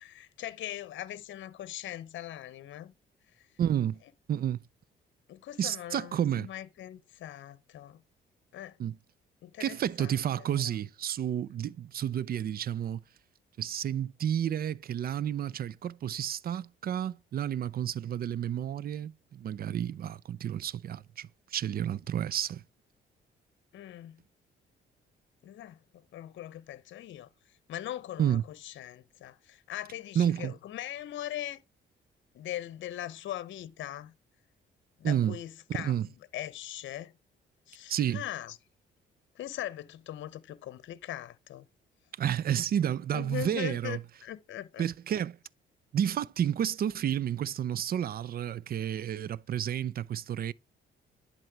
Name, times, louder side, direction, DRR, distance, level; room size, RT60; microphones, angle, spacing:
voice 1, 0.0-2.9 3.4-3.5 5.3-8.0 8.5-8.8 9.4-10.2 23.7-24.2 25.4-25.8 26.1-27.3 27.7-31.6 32.3-34.1 35.0-36.0 36.3-37.1 37.7-38.6 39.3-41.7 43.1-44.8, left 12 dB, 70° left, 0.8 m, -40 dB
voice 2, 3.6-4.0 4.3-4.6 5.6-6.5 8.8-9.0 9.6-13.0 13.6-22.6 28.2-28.4 30.2-30.5 35.0-35.4 35.8-36.1 37.9-38.2 42.2-44.0 44.8-45.4 45.9-50.5, right 10 dB, 50° right, 0.5 m, -31 dB
10.5 x 4.3 x 4.6 m
cardioid pair, 90°, 20 cm